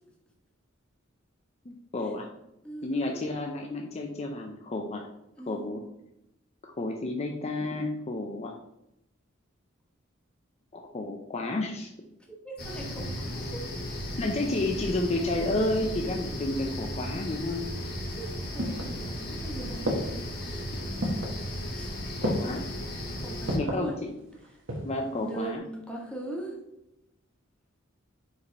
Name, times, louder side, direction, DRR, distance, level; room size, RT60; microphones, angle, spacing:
voice 1, 1.7-2.3 2.8-5.0 5.5-5.8 6.8-8.5 10.7-11.9 14.2-17.7 22.2-22.6 23.5-24.1 24.8-25.6, left 2 dB, 35° left, 2 dB, 0.5 m, -31 dB
voice 2, 2.6-3.4 5.4-5.7 12.4-13.6 17.8-19.8 20.4-21.1 21.4-22.0 23.2-23.9 25.1-26.6, right 2 dB, 5° left, -2 dB, 1.6 m, -41 dB
sound 1, 12.6-23.6, left 1 dB, 55° left, 1.5 m, -36 dB
sound 2, 18.0-19.4 19.9-20.4 21.0-21.4 22.2-22.7 23.5-23.9 24.4-25.0 25.3-25.4, equal, 65° right, 1.3 m, -31 dB
5.2 x 5.0 x 4.1 m, 0.84 s
head